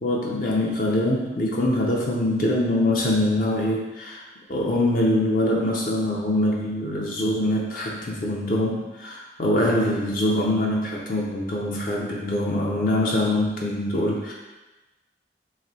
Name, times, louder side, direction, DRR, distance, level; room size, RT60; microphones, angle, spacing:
voice 1, 0.0-4.2 4.5-14.3, left 1 dB, 50° left, -2 dB, 0.5 m, -24 dB
3.1 x 3.0 x 3.9 m, 1.1 s
head